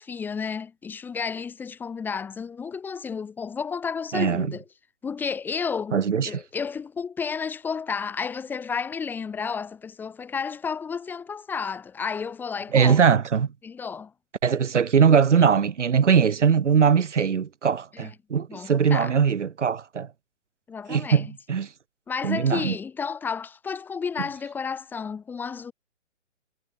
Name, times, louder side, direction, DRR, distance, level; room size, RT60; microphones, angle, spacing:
voice 1, 0.0-4.6 5.0-6.0 6.2-13.0 13.6-14.1 17.9-18.1 18.5-19.1 20.7-21.3 22.1-25.7, left 6 dB, 5° left, 2.5 m, -32 dB
voice 2, 4.1-4.5 5.9-6.3 12.7-13.5 14.4-20.1 20.9-21.7 22.2-22.8, right 7 dB, 65° right, 2.0 m, -21 dB
hypercardioid pair, 170°, 38 cm